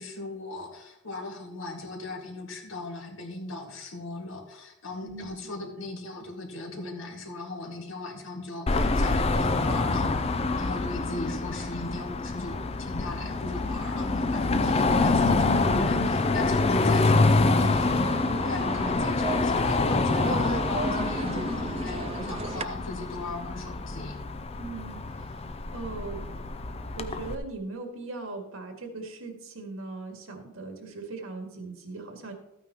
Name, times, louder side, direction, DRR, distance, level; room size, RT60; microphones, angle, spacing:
voice 1, 0.0-18.0 18.4-24.2, left 2 dB, 65° left, 2 dB, 2.0 m, -38 dB
voice 2, 5.0-5.4 14.4-14.8 16.4-16.7 24.5-25.4 25.7-26.3 27.0-32.3, right 3 dB, 75° right, 3 dB, 2.0 m, -39 dB
Car passing by / Traffic noise roadway noise / Engine, 8.7-27.4, left 3 dB, 30° left, 0.5 m, -26 dB
sound 1, 17.6-22.6, right 4 dB, 30° right, 0.4 m, -35 dB
13.5 x 9.2 x 3.0 m, 0.91 s
head